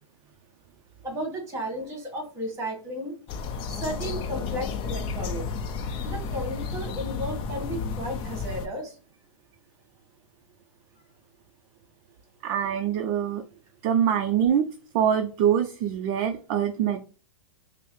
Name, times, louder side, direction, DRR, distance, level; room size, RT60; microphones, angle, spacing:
voice 1, 1.0-3.1 3.7-5.4 6.0-9.0, equal, 15° right, 2 dB, 1.7 m, -34 dB
sound 1, 3.3-8.7, left 5 dB, 30° left, 0.5 m, -32 dB
voice 2, 12.4-13.4 13.8-14.7 14.9-17.0, right 9 dB, 40° right, 5 dB, 0.4 m, -24 dB
5.3 x 2.0 x 3.1 m, 0.38 s
hypercardioid pair, 130°, 17 cm